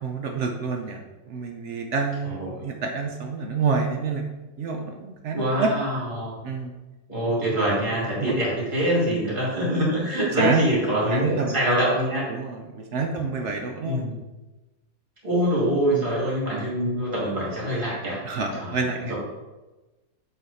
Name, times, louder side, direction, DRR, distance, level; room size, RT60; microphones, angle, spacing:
voice 1, 0.0-4.3 4.6-5.7 6.4-6.7 8.2-8.3 10.2-10.6 10.9-11.6 12.3-14.0 15.9-16.1 18.2-19.1, right 4 dB, 65° right, 3 dB, 0.7 m, -28 dB
voice 2, 5.3-6.3 7.1-12.2 13.8-14.2 15.2-18.2 18.6-18.8 19.1-19.2, equal, 30° right, -5 dB, 2.7 m, -24 dB
7.7 x 3.9 x 4.1 m, 1.1 s
omnidirectional pair, 1.8 m